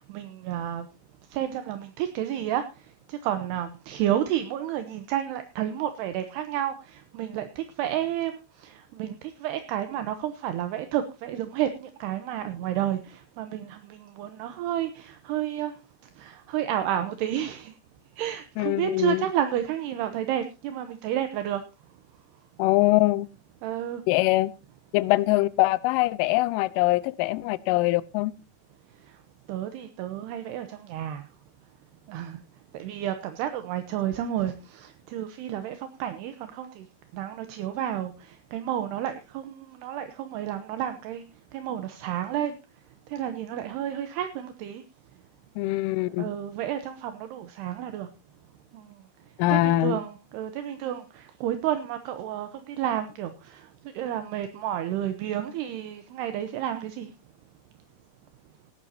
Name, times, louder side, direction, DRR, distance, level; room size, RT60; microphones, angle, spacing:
voice 1, 0.1-0.9 1.3-2.6 3.1-8.3 8.6-15.7 16.2-17.7 18.2-21.6 23.6-24.0 29.5-31.2 32.1-32.4 32.7-36.9 37.1-41.2 41.5-42.6 43.1-44.8 46.2-48.1 48.7-48.8 49.5-53.7 53.9-57.1, right 11 dB, 75° right, 8 dB, 2.6 m, -31 dB
voice 2, 18.6-19.3 22.6-23.3 24.1-24.5 24.9-28.3 45.6-46.2 49.4-50.0, left 18 dB, 80° left, 17 dB, 3.2 m, -23 dB
18.0 x 12.0 x 2.8 m, 0.29 s
omnidirectional pair, 5.7 m